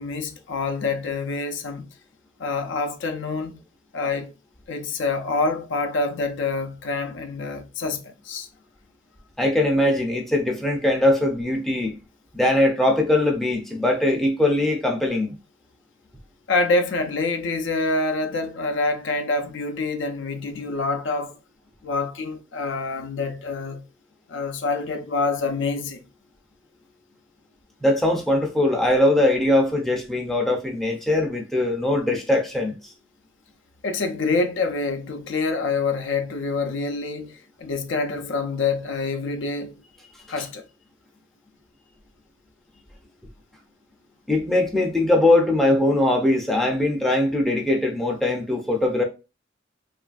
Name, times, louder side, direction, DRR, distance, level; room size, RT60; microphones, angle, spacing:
voice 1, 0.0-1.9 2.4-3.6 3.9-4.3 4.7-8.5 16.5-21.4 21.8-23.8 24.3-26.0 33.8-39.7 40.3-40.7, left 3 dB, 65° left, 0.4 m, -26 dB
voice 2, 9.4-12.0 12.3-15.3 27.8-32.9 44.3-49.0, left 1 dB, ahead, 0.4 m, -21 dB
3.1 x 2.4 x 2.3 m
head